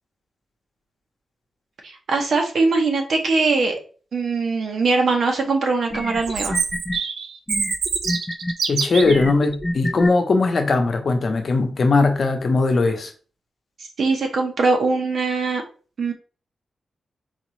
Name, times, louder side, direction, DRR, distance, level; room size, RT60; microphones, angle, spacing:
voice 1, 1.8-3.8 4.1-6.6 14.0-15.6 16.0-16.1, right 3 dB, 60° right, 0.9 m, -21 dB
sound 1, 5.4-5.5 5.9-7.0 7.5-8.5 9.0-10.1, left 1 dB, 10° left, 0.3 m, -28 dB
Chirp tweet, 6.2-9.2, right 5 dB, 80° right, 0.5 m, -25 dB
voice 2, 8.7-13.1, left 3 dB, 45° left, 0.8 m, -19 dB
4.1 x 3.9 x 3.1 m
wide cardioid pair, 165°, 0 cm